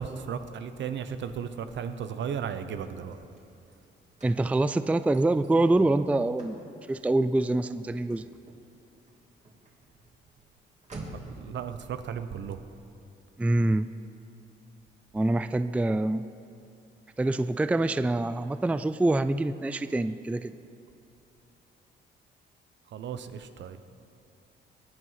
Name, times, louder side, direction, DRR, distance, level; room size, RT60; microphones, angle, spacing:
voice 1, 0.0-3.2 11.1-12.6 22.9-23.8, right 7 dB, 65° right, 10 dB, 0.9 m, -35 dB
Car / Slam, 3.1-11.5, right 2 dB, 35° right, 3.0 m, -50 dB
voice 2, 4.2-6.6 6.9-8.2 13.4-13.9 15.1-16.3 17.2-20.5, right 2 dB, 5° right, 13 dB, 0.4 m, -25 dB
21.5 x 9.6 x 5.8 m, 2.6 s
cardioid pair, 90°, 20 cm